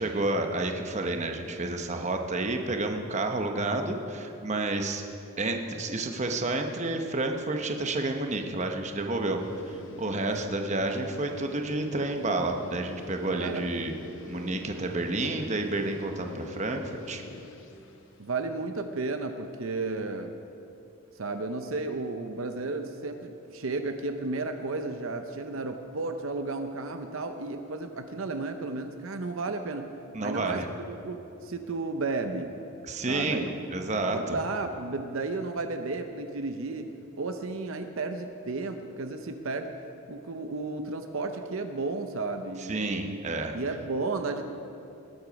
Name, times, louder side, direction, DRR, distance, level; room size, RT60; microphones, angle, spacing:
voice 1, 0.0-5.0 5.4-9.4 9.7-13.9 14.3-17.2 30.1-30.7 32.9-33.5 33.7-34.4 42.7-43.5, right 2 dB, 30° right, 4 dB, 0.9 m, -30 dB
sound 1, 9.4-18.1, left 1 dB, 60° left, 1.0 m, -44 dB
voice 2, 18.2-20.3 21.2-29.9 30.2-32.5 33.1-33.5 34.1-39.7 40.1-43.2 43.5-44.4, right 3 dB, 70° right, 7 dB, 0.7 m, -33 dB
19.5 x 7.9 x 5.2 m, 2.8 s
head